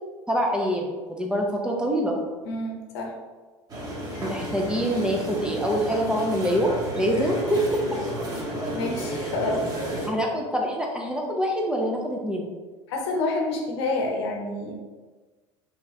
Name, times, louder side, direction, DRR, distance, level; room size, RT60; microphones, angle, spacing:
voice 1, 0.3-2.2 4.2-7.6 9.2-9.3 10.1-12.5, equal, 5° right, 0 dB, 0.6 m, -25 dB
voice 2, 2.5-3.1 4.1-4.5 8.7-9.6 12.9-14.7, left 2 dB, 60° left, 1 dB, 0.8 m, -28 dB
sound 1, 3.7-10.1, right 1 dB, 25° right, 1.1 m, -32 dB
3.4 x 3.4 x 3.1 m, 1.3 s
figure-of-eight pair, 75°, 15 cm